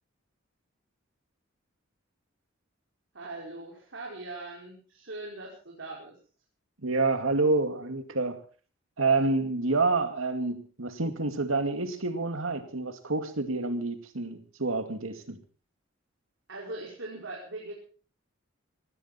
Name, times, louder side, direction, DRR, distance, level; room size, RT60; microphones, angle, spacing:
voice 1, 3.1-6.2 16.5-17.7, right 2 dB, 65° right, 5.2 m, -40 dB
voice 2, 6.8-8.4 9.0-15.4, right 3 dB, 85° right, 2.3 m, -28 dB
19.0 x 16.5 x 4.4 m
head